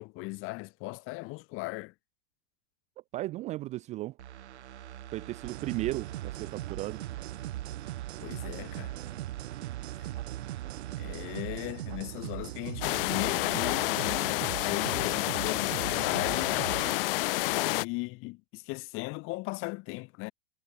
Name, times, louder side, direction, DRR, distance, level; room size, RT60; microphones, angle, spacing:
voice 1, 0.0-1.9 8.2-9.0 10.0-10.1 11.0-16.6 17.6-20.3, left 25 dB, 40° left, 2.0 m, -38 dB
voice 2, 3.1-4.2 5.1-7.0, right 17 dB, 20° right, 0.4 m, -35 dB
sound 1, 4.2-12.9 13.2-13.3, right 11 dB, 85° right, 5.9 m, -46 dB
sound 2, 5.4-17.0, right 15 dB, 70° right, 3.4 m, -39 dB
sound 3, 12.8-17.8, left 21 dB, 55° left, 0.9 m, -29 dB
supercardioid pair, 145°, 33 cm